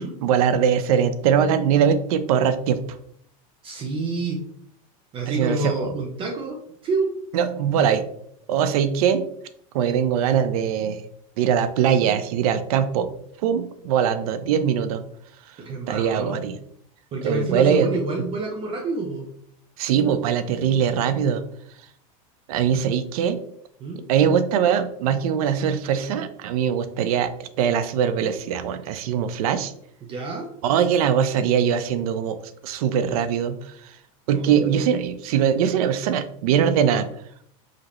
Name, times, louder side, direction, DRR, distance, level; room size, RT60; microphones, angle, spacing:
voice 1, 0.0-2.8 5.3-5.9 7.3-8.0 8.5-9.2 9.7-11.0 11.4-13.1 13.4-15.0 15.9-16.6 17.2-17.9 19.8-21.4 22.5-23.4 24.1-29.7 30.6-32.4 32.6-34.0 34.3-37.1, right 8 dB, 75° right, 11 dB, 0.5 m, -22 dB
voice 2, 3.6-4.4 5.1-7.2 15.6-16.4 17.1-19.2 23.8-24.0 30.0-30.5 34.3-34.8, right 3 dB, 30° right, 2 dB, 0.6 m, -28 dB
5.0 x 2.8 x 3.0 m, 0.67 s
supercardioid pair, 145°, 19 cm